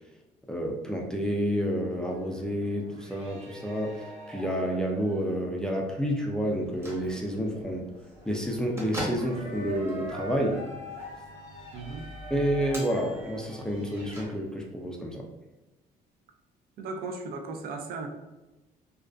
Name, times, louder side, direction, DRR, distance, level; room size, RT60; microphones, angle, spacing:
voice 1, 0.5-4.0 4.3-7.9 8.3-10.6 12.3-15.3, equal, 5° left, 0 dB, 0.3 m, -29 dB
sound 1, 1.7-14.3, right 1 dB, 35° right, 1.1 m, -44 dB
Bell / Microwave oven, 6.5-14.8, equal, 15° right, 0.9 m, -43 dB
voice 2, 11.7-12.1 16.8-18.1, right 3 dB, 65° right, 5 dB, 0.4 m, -36 dB
2.4 x 2.2 x 2.3 m, 1.0 s
cardioid pair, 110°, 17 cm